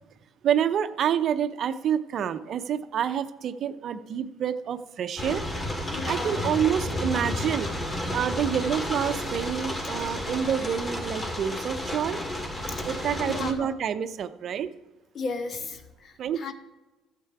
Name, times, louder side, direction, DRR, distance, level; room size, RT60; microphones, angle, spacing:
voice 1, 0.4-5.4 6.1-7.7 8.1-12.2 12.8-14.7 16.2-16.5, right 8 dB, 55° right, 10 dB, 0.6 m, -28 dB
sound 1, 5.2-13.5, left 1 dB, 25° left, 2.0 m, -31 dB
voice 2, 5.9-6.4 12.7-12.9 13.2-13.7 15.1-16.5, left 4 dB, 50° left, 8 dB, 1.2 m, -35 dB
12.0 x 7.5 x 4.7 m, 1.1 s
supercardioid pair, 75°, 0 cm